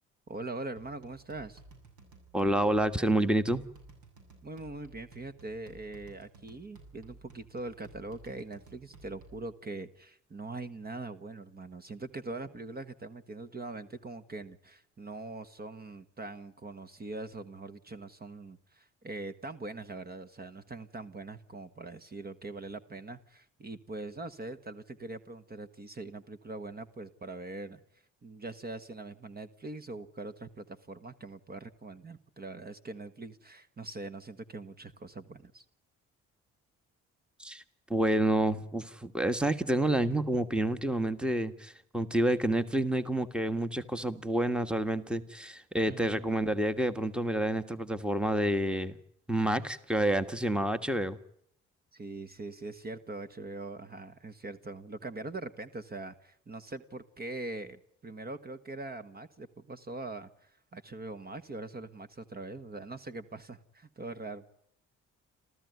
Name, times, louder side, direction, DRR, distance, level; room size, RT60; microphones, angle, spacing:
voice 1, 0.3-1.6 4.4-27.8 28.2-35.6 45.9-46.2 51.9-64.4, right 2 dB, 30° right, 12 dB, 1.4 m, -42 dB
sound 1, 0.8-9.5, right 3 dB, 75° right, 7.5 m, -55 dB
voice 2, 2.3-3.6 37.4-37.6 37.9-49.0 49.3-51.2, right 1 dB, 5° right, 12 dB, 1.5 m, -29 dB
28.0 x 14.5 x 9.4 m, 0.72 s
cardioid pair, 90°, 30 cm